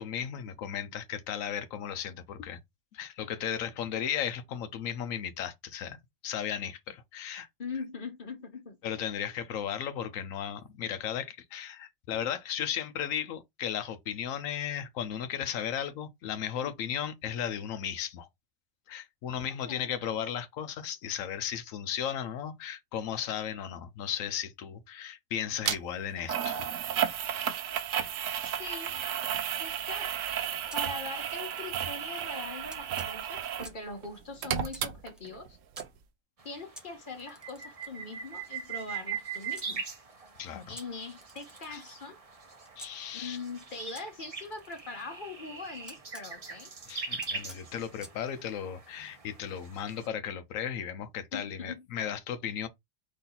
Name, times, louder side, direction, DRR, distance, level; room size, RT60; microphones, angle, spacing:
voice 1, 0.0-2.6 2.9-7.5 8.8-18.3 18.9-26.7 40.4-40.8 41.7-41.8 42.8-43.4 46.9-52.7, left 9 dB, 90° left, 1.0 m, -35 dB
voice 2, 7.6-8.8 16.6-16.7 19.7-19.9 28.6-29.0 29.6-30.1 30.7-35.6 36.4-39.8 40.7-42.2 43.1-46.7 51.3-51.9, left 4 dB, 45° left, 1.0 m, -41 dB
sound 1, 25.6-25.8 26.3-33.7 34.0-35.5 35.8-35.9, right 9 dB, 80° right, 1.0 m, -33 dB
Camera, 30.7-31.9 32.7-33.9 34.7-35.9 36.7-39.7 40.7-42.9 43.9-46.3 47.2-48.2, equal, ahead, 0.6 m, -52 dB
sound 2, 36.4-50.1, right 5 dB, 35° right, 0.7 m, -42 dB
4.2 x 3.1 x 3.8 m
omnidirectional pair, 1.4 m